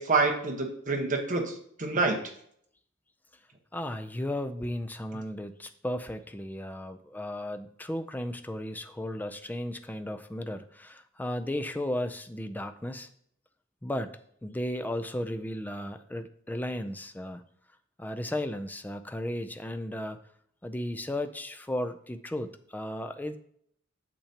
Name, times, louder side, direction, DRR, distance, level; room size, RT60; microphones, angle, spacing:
voice 1, 0.0-2.2, right 3 dB, 40° right, 2 dB, 1.3 m, -27 dB
voice 2, 3.7-13.1 13.8-17.4 18.0-20.2 20.6-23.4, left 1 dB, 10° left, 9 dB, 0.4 m, -35 dB
8.7 x 6.9 x 2.9 m, 0.66 s
head